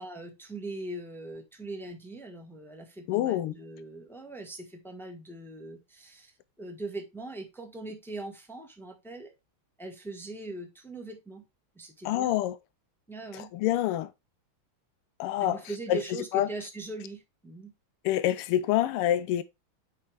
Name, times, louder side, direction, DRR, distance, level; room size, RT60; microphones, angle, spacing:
voice 1, 0.0-6.3 6.6-9.3 9.8-11.4 11.7-12.3 13.1-13.5 15.4-17.7, right 2 dB, ahead, 0.9 m, -41 dB
voice 2, 3.1-3.5 12.0-12.6 13.3-14.1 15.2-15.6 15.9-16.5 18.0-19.4, left 13 dB, 90° left, 1.5 m, -27 dB
8.6 x 4.8 x 3.4 m
omnidirectional pair, 2.4 m